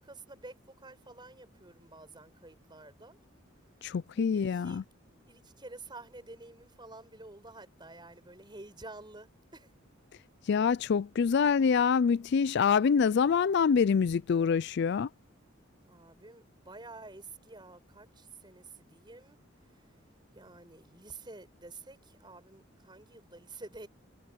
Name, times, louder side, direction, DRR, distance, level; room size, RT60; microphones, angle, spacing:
voice 1, 0.0-3.2 4.2-4.8 5.2-9.7 15.9-19.4 19.7-19.9 20.3-23.9, right 2 dB, 20° right, 5.7 m, -50 dB
voice 2, 3.8-4.8 10.5-15.1, left 6 dB, 55° left, 0.4 m, -26 dB
head